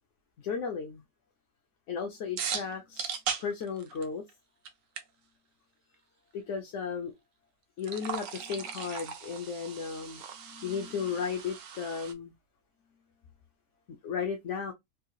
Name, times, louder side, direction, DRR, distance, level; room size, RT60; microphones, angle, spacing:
voice 1, 0.4-1.0 1.9-4.2 6.3-7.1 7.8-12.3 14.0-14.7, left 6 dB, 65° left, 0.9 m, -35 dB
sound 1, 2.4-4.3 4.7-4.8 5.0-5.1 7.8-12.1, right 7 dB, 65° right, 1.1 m, -38 dB
3.7 x 2.9 x 2.3 m
omnidirectional pair, 1.6 m